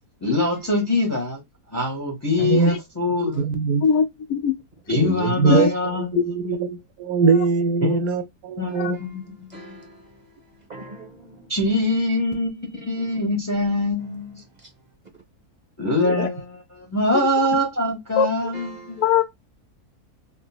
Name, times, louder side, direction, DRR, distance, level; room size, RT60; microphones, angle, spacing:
voice 1, 0.2-1.4 1.7-3.4 4.9-6.2 6.4-6.6 7.8-8.0 8.6-9.8 11.5-14.4 15.8-19.0, left 2 dB, 25° left, 0.3 m, -24 dB
voice 2, 2.4-2.8 3.4-3.9 4.9-5.7 6.0-9.0, right 5 dB, 75° right, 1.0 m, -22 dB
voice 3, 3.8-4.5 5.5-5.7 6.2-6.3 8.7-8.9 16.0-16.3 18.2-18.3 19.0-19.2, left 7 dB, 75° left, 1.1 m, -21 dB
voice 4, 8.7-9.2 9.5-11.5 13.0-13.1 14.6-14.7 16.2-16.3 18.5-19.0, right 4 dB, 40° right, 0.6 m, -42 dB
3.7 x 2.0 x 2.2 m
omnidirectional pair, 1.7 m